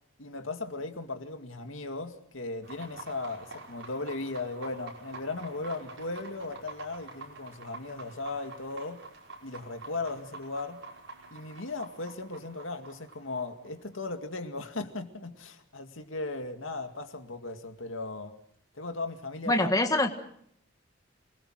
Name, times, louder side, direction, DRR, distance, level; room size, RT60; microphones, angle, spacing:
voice 1, 0.2-9.0 9.4-10.8 11.3-18.3 18.7-19.7, left 3 dB, 85° left, 2.2 m, -37 dB
sound 1, 2.6-14.1, right 3 dB, 70° right, 5.3 m, -47 dB
voice 2, 19.5-20.1, left 1 dB, 20° left, 1.5 m, -24 dB
27.5 x 21.0 x 6.3 m
head